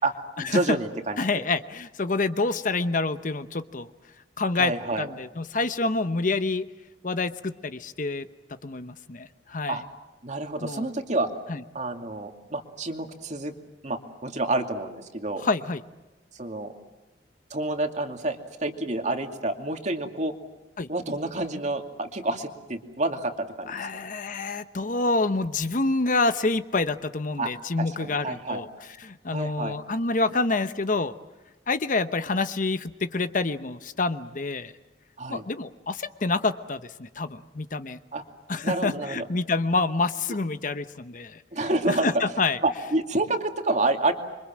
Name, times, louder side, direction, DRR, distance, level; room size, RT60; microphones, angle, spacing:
voice 1, 0.0-1.3 4.6-5.1 9.7-9.8 10.2-11.3 11.7-13.5 13.8-15.5 16.3-16.7 17.5-20.3 20.9-23.9 27.4-27.5 27.8-28.6 29.3-29.8 35.2-35.4 38.1-38.2 38.6-39.3 41.5-42.1 42.6-44.1, right 2 dB, 40° right, 5 dB, 2.5 m, -28 dB
voice 2, 1.2-3.9 4.4-6.7 7.0-8.3 8.6-9.8 10.6-10.9 11.5-11.6 15.4-15.8 20.8-20.9 23.7-28.7 29.0-31.2 31.7-34.7 35.3-38.0 38.5-41.4 41.9-42.6, left 3 dB, 45° left, 11 dB, 0.9 m, -27 dB
27.0 x 24.0 x 7.5 m, 1.1 s
head